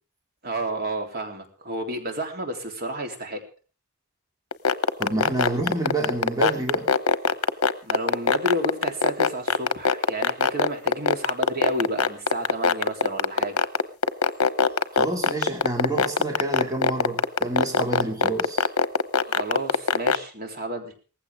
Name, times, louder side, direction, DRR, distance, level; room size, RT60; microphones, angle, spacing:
voice 1, 0.4-3.4 7.8-13.6 19.3-20.9, right 1 dB, 45° right, 3 dB, 3.5 m, -31 dB
sound 1, 4.5-20.2, left 5 dB, 75° left, 0.9 m, -20 dB
voice 2, 5.0-6.9 14.9-18.6, right 2 dB, 15° right, 2 dB, 2.6 m, -28 dB
19.0 x 15.5 x 3.6 m, 0.38 s
head